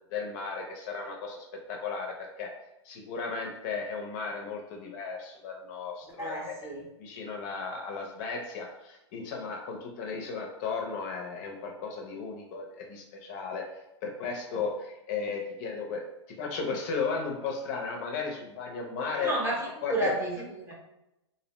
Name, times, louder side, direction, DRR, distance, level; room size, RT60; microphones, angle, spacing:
voice 1, 0.1-2.5 2.8-6.6 7.0-13.6 14.0-19.3 19.8-20.1, left 5 dB, 40° left, 1 dB, 0.5 m, -35 dB
voice 2, 6.2-6.8 19.1-20.7, right 1 dB, 15° right, -3 dB, 0.7 m, -31 dB
2.6 x 2.0 x 2.9 m, 0.91 s
hypercardioid pair, 125°, 16 cm